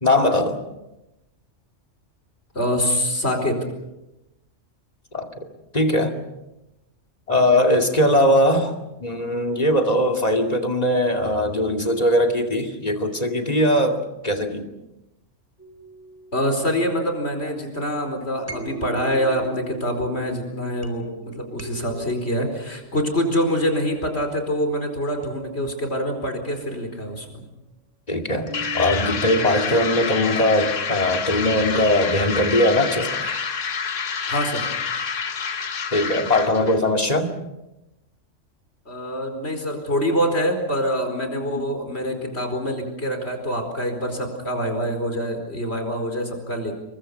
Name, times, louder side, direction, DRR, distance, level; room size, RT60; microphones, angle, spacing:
voice 1, 0.0-0.6 5.1-5.4 5.7-6.1 7.3-8.7 9.0-14.7 28.1-33.4 35.9-37.3, left 1 dB, 30° left, 3 dB, 2.5 m, -20 dB
voice 2, 2.5-3.6 7.3-7.5 16.3-27.4 29.6-29.8 34.3-34.6 38.8-46.7, equal, 60° left, 5 dB, 4.9 m, -25 dB
sound 1, 15.6-17.5 18.4-24.2 25.2-26.6 28.5-30.0, right 4 dB, 10° right, 4.0 m, -40 dB
sound 2, 28.5-36.8, left 6 dB, 80° left, 1.6 m, -28 dB
29.0 x 23.5 x 5.7 m, 0.94 s
omnidirectional pair, 1.3 m